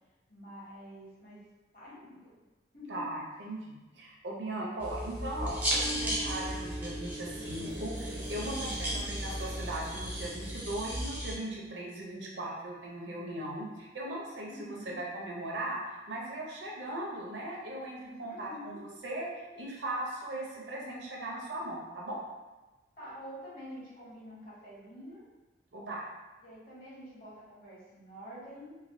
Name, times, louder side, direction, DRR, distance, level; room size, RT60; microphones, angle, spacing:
voice 1, 0.3-1.4 1.7-2.3 2.7-3.2 8.3-9.0 14.5-15.0 18.3-18.8 23.0-25.2 26.4-28.7, equal, 50° left, -8 dB, 1.0 m, -47 dB
voice 2, 2.9-19.3 19.5-22.2 25.7-26.0, right 1 dB, 65° right, -2 dB, 0.6 m, -38 dB
sound 1, 4.8-11.3, equal, 10° right, 0.4 m, -35 dB
sound 2, 6.1-12.0, equal, 90° right, 1.0 m, -48 dB
3.1 x 2.2 x 2.5 m, 1.1 s
head